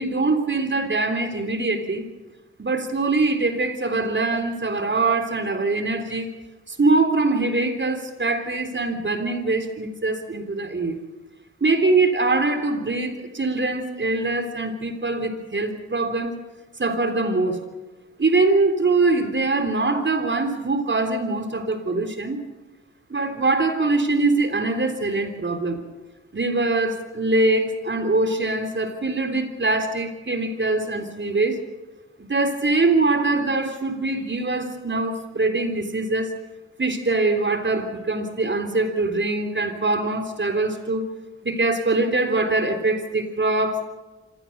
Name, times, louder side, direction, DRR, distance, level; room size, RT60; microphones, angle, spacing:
voice 1, 0.0-2.0 2.6-6.3 6.7-11.0 11.6-16.4 16.8-17.6 18.2-22.4 23.1-25.8 26.3-31.6 32.2-36.3 36.8-41.1 41.4-43.9, right 3 dB, 40° right, 6 dB, 3.6 m, -23 dB
26.0 x 16.5 x 6.7 m, 1.2 s
supercardioid pair, 45°, 29 cm